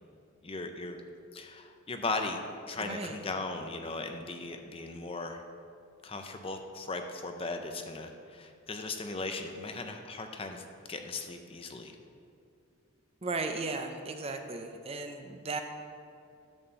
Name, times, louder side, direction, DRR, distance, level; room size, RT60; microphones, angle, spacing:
voice 1, 0.4-1.0 1.3-2.4 2.7-5.4 6.0-12.0, left 3 dB, 25° left, 5 dB, 0.5 m, -37 dB
voice 2, 2.8-3.2 13.2-15.6, right 3 dB, 30° right, 5 dB, 0.5 m, -36 dB
10.5 x 4.3 x 6.9 m, 2.5 s
head